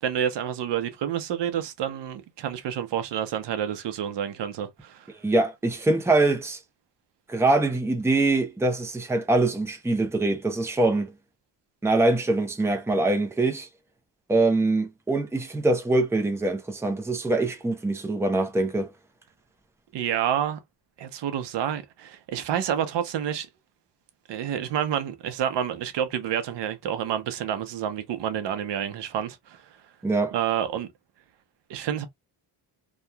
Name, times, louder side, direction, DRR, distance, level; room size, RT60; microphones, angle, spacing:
voice 1, 0.0-5.1 19.9-20.6 21.0-23.5 24.3-29.6 30.3-30.9 31.7-32.1, right 9 dB, 85° right, 0.8 m, -29 dB
voice 2, 5.2-6.6 7.3-11.1 11.8-13.7 14.3-18.9 30.0-30.3, right 2 dB, 5° right, 0.6 m, -23 dB
2.8 x 2.4 x 2.2 m
cardioid pair, 120°, 41 cm